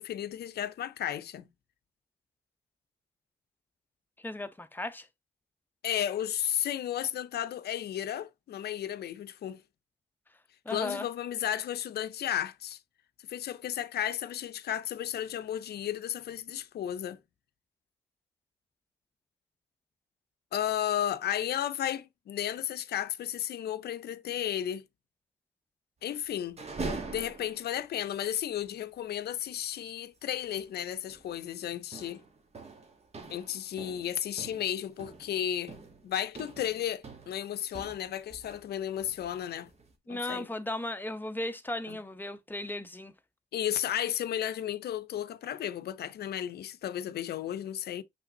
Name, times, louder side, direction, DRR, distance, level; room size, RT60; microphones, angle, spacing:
voice 1, 0.0-1.5 5.8-9.6 10.7-12.8 13.3-17.2 20.5-24.8 26.0-26.6 27.1-32.2 33.3-35.7 36.0-39.7 40.1-40.5 41.9-42.0 43.5-48.0, left 10 dB, 70° left, 0.5 m, -33 dB
voice 2, 4.2-5.1 10.6-11.1 40.1-43.1, left 1 dB, 10° left, 0.8 m, -36 dB
sound 1, 26.4-27.9 28.3-28.4 28.6-28.8 30.4-30.7 31.1-31.4 31.9-38.7 39.0-39.9, right 3 dB, 40° right, 1.3 m, -43 dB
5.7 x 3.3 x 2.7 m
cardioid pair, 70°, 17 cm